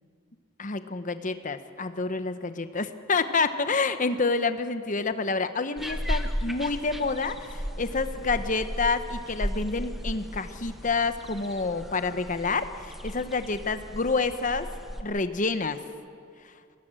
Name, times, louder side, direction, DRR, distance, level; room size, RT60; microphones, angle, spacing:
voice 1, 0.6-14.7 15.0-15.8, left 4 dB, 40° left, 10 dB, 0.9 m, -28 dB
sound 1, 5.8-15.0, equal, ahead, 1.0 m, -35 dB
20.5 x 17.0 x 7.6 m, 2.3 s
head